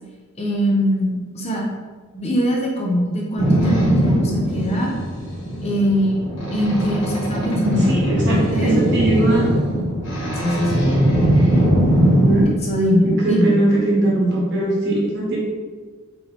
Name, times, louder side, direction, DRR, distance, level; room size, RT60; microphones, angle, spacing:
voice 1, 0.4-1.7 2.1-4.9 5.6-6.2 6.5-8.0 8.3-8.9 10.4-10.7 12.7-13.6, equal, 30° left, -2 dB, 0.7 m, -22 dB
Boat Water vehicle, 3.4-12.4, equal, 60° left, 1.4 m, -20 dB
voice 2, 7.7-9.5 12.2-12.5 13.0-15.4, right 1 dB, 50° right, -4 dB, 1.2 m, -20 dB
5.1 x 3.1 x 3.3 m, 1.4 s
head